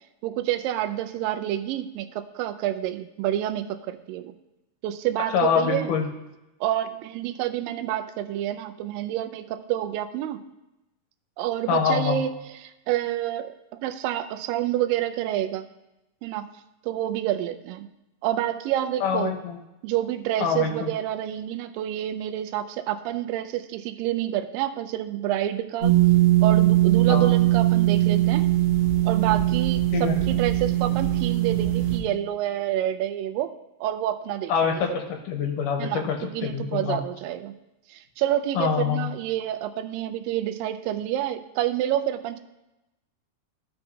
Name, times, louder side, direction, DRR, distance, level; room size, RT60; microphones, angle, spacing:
voice 1, 0.2-4.3 4.8-6.0 6.6-10.4 11.4-12.3 12.6-13.5 13.8-15.7 16.2-16.5 16.8-17.9 18.2-19.3 19.8-26.0 26.4-28.5 29.0-33.5 33.8-34.7 35.8-37.5 37.9-42.4, right 12 dB, 85° right, 9 dB, 2.3 m, -28 dB
voice 2, 5.3-6.1 11.7-12.2 19.0-19.6 20.4-20.9 27.1-27.3 29.9-30.2 34.5-36.1 36.4-37.0 38.5-39.1, left 7 dB, 75° left, 3 dB, 2.4 m, -25 dB
sound 1, 25.8-32.0, right 15 dB, 65° right, 0.5 m, -20 dB
13.5 x 5.6 x 2.7 m, 0.95 s
omnidirectional pair, 3.9 m